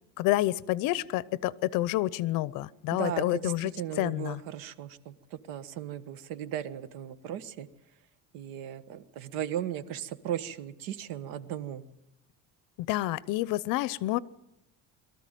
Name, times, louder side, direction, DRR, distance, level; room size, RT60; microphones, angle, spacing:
voice 1, 0.2-3.7 4.0-4.4 12.8-14.2, left 16 dB, 70° left, 20 dB, 0.8 m, -28 dB
voice 2, 2.9-7.7 8.3-11.8, right 10 dB, 90° right, 14 dB, 1.4 m, -37 dB
22.5 x 13.5 x 9.3 m, 0.83 s
cardioid pair, 170°, 34 cm